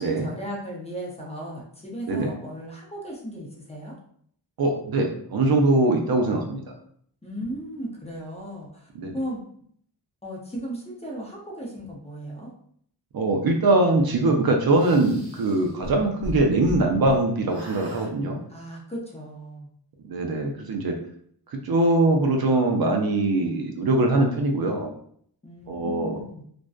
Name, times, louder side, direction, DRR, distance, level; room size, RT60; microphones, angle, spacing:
voice 1, 0.0-3.9 7.2-9.4 10.2-12.5 18.5-19.7 25.4-26.4, equal, 15° left, -3 dB, 0.6 m, -36 dB
voice 2, 4.6-6.6 9.0-9.1 13.1-18.4 20.1-21.0 21.6-24.9 25.7-26.2, right 2 dB, 60° right, 2 dB, 0.5 m, -22 dB
sound 1, 14.7-17.2 17.5-18.1, equal, 30° right, 1.0 m, -37 dB
2.5 x 2.2 x 2.3 m, 0.63 s
wide cardioid pair, 95°, 43 cm